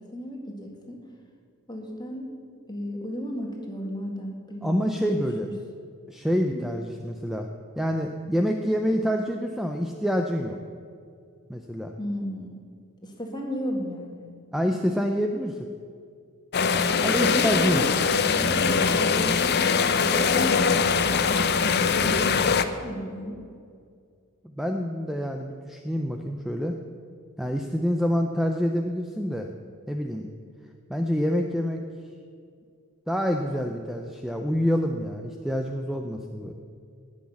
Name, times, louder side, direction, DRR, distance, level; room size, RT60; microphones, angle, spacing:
voice 1, 0.1-1.0 1.7-2.3 2.7-5.5 6.5-6.6 12.0-12.5 13.0-14.3 16.9-18.0 18.4-23.4, equal, 20° left, 0 dB, 2.1 m, -34 dB
voice 2, 4.6-5.5 6.1-7.5 7.8-10.6 11.5-11.9 14.5-15.6 17.0-17.9 24.4-26.7 27.4-29.5 29.9-30.3 30.9-31.8 33.1-36.5, equal, ahead, 4 dB, 0.5 m, -27 dB
sound 1, 16.5-22.6, left 5 dB, 50° left, 0.6 m, -22 dB
18.5 x 6.4 x 7.2 m, 2.2 s
head